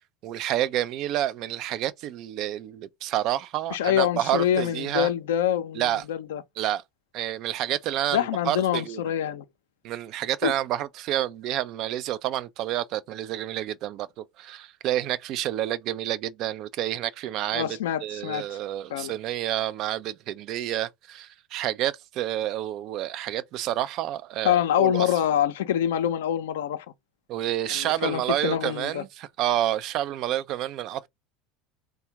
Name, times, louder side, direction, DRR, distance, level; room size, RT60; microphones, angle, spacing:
voice 1, 0.2-5.1 5.7-6.0 6.6-6.8 7.1-9.0 9.8-25.1 27.3-31.1, right 12 dB, 55° right, 0.4 m, -29 dB
voice 2, 3.7-6.4 8.1-9.4 10.4-10.5 17.5-18.6 18.9-19.1 24.4-26.9 27.7-29.0, left 10 dB, 75° left, 0.5 m, -25 dB
3.5 x 2.2 x 2.8 m
hypercardioid pair, 80°, 0 cm